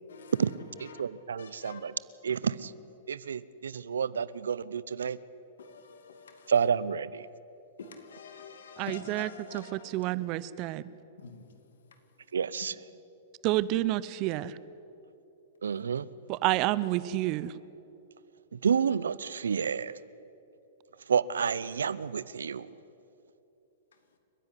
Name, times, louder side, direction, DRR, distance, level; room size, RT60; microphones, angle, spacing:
voice 1, 0.8-1.9 2.2-2.7 3.1-5.2 6.5-7.3 12.3-12.7 15.6-16.1 18.6-20.0 21.1-22.7, right 7 dB, 85° right, 0.7 m, -29 dB
voice 2, 1.4-1.9 5.6-6.5 7.8-9.9 11.2-11.4, left 5 dB, 80° left, 2.6 m, -46 dB
voice 3, 8.8-10.9 13.4-14.6 16.3-17.5, right 16 dB, 40° right, 0.7 m, -29 dB
29.5 x 10.5 x 9.9 m
hypercardioid pair, 115°, 0 cm